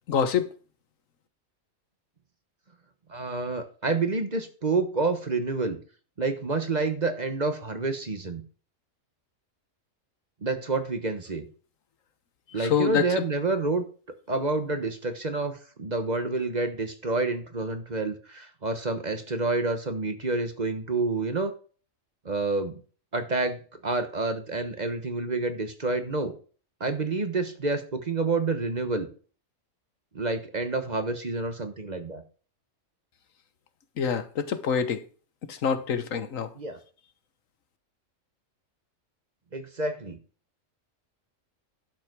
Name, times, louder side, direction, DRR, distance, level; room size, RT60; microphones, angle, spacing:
voice 1, 0.1-0.5 12.6-13.2 34.0-35.0 35.5-36.5, left 7 dB, 80° left, 1.4 m, -26 dB
voice 2, 3.1-5.8 6.2-8.4 10.4-11.5 12.5-13.8 14.3-21.5 22.2-22.8 23.1-26.3 26.8-29.1 30.1-32.2 36.5-36.8 39.5-40.2, right 3 dB, 35° right, 1.2 m, -28 dB
11.5 x 5.2 x 6.1 m
omnidirectional pair, 1.4 m